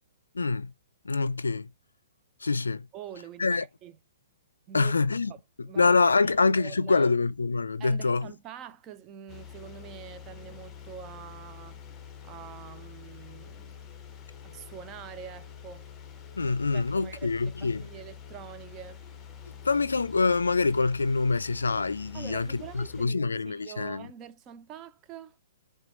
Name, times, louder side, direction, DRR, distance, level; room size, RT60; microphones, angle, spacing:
voice 1, 0.3-0.7 1.0-1.7 2.4-2.9 3.4-3.6 4.7-5.3 5.8-8.3 16.4-17.9 19.6-24.1, left 4 dB, 85° left, 0.4 m, -25 dB
voice 2, 2.9-3.9 4.7-5.2 5.6-6.0 6.3-7.1 7.8-11.8 12.2-13.8 14.4-15.9 16.7-19.0 22.1-25.4, right 9 dB, 30° right, 0.5 m, -45 dB
sound 1, 9.3-23.1, left 7 dB, 20° left, 0.7 m, -46 dB
6.0 x 2.3 x 3.0 m
hypercardioid pair, 125°, 0 cm